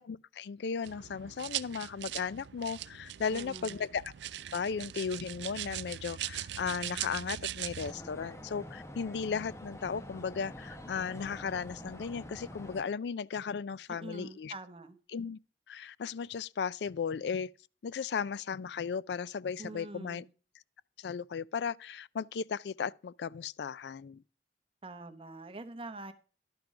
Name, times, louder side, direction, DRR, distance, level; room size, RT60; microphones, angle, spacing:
voice 1, 0.0-4.1 4.5-14.5 15.1-15.4 15.7-17.5 17.8-20.2 21.0-24.2, left 6 dB, 75° left, 0.4 m, -36 dB
sound 1, 0.8-7.9, right 12 dB, 85° right, 0.4 m, -40 dB
voice 2, 3.3-3.8 13.9-15.0 19.6-20.3 24.8-26.1, right 2 dB, 30° right, 0.9 m, -45 dB
sound 2, 7.8-12.8, equal, 15° left, 1.0 m, -46 dB
11.5 x 5.9 x 4.9 m
head